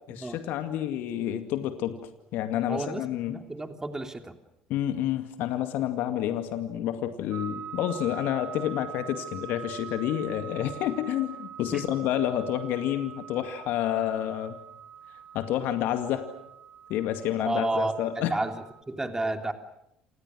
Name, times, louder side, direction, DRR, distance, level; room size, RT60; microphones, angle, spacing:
voice 1, 0.1-2.0 2.3-3.4 4.7-14.6 15.3-16.3 16.9-18.4, left 11 dB, 60° left, 8 dB, 2.3 m, -29 dB
voice 2, 2.7-3.0 3.3-4.3 11.7-11.8 17.4-19.5, right 2 dB, 15° right, 6 dB, 3.2 m, -31 dB
sound 1, 7.3-18.8, right 8 dB, 50° right, 3.7 m, -44 dB
29.0 x 28.0 x 6.3 m, 0.79 s
hypercardioid pair, 60°, 4 cm